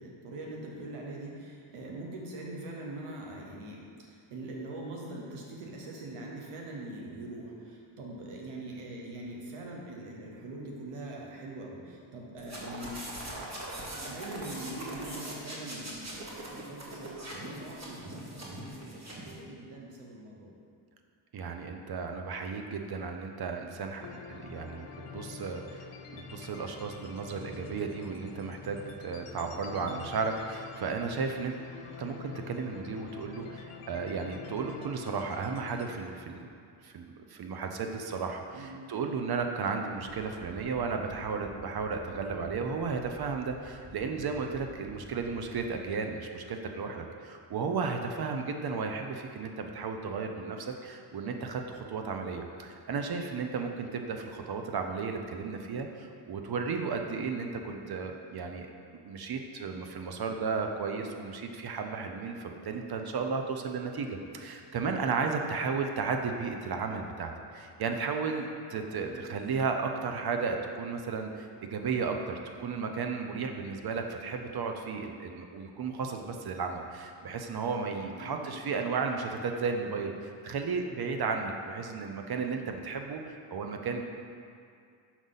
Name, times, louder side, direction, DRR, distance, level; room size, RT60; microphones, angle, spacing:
voice 1, 0.0-13.1 13.3-20.5 38.5-38.9 69.0-69.3 78.2-78.7, right 2 dB, 90° right, -1 dB, 1.1 m, -43 dB
sound 1, 12.4-19.4, right 1 dB, 30° right, 1.4 m, -41 dB
voice 2, 21.3-31.6 32.0-36.5 36.8-58.7 59.0-84.0, right 5 dB, 50° right, 4 dB, 0.7 m, -34 dB
sound 2, 24.0-36.0, left 6 dB, 80° left, 0.7 m, -46 dB
sound 3, 40.0-45.9, left 1 dB, 5° left, 0.6 m, -51 dB
6.1 x 3.9 x 4.0 m, 2.3 s
cardioid pair, 65°, 50 cm